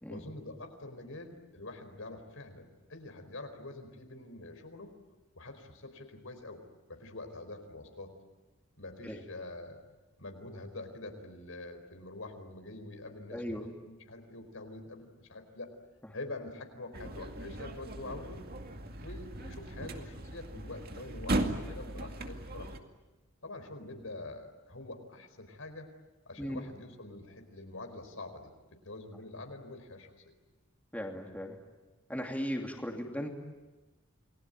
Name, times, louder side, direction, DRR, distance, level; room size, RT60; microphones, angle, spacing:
voice 1, 0.1-4.9 5.3-6.6 6.9-8.1 8.8-9.8 10.2-15.7 16.1-18.4 19.0-22.7 23.4-25.9 26.3-30.3, left 2 dB, 75° left, 6 dB, 4.5 m, -45 dB
voice 2, 13.3-13.6 26.4-26.6 30.9-31.6 32.1-33.3, equal, 5° left, 1 dB, 2.8 m, -37 dB
sound 1, 16.9-22.8, right 1 dB, 45° right, 2.2 m, -37 dB
29.0 x 21.0 x 9.2 m, 1.2 s
head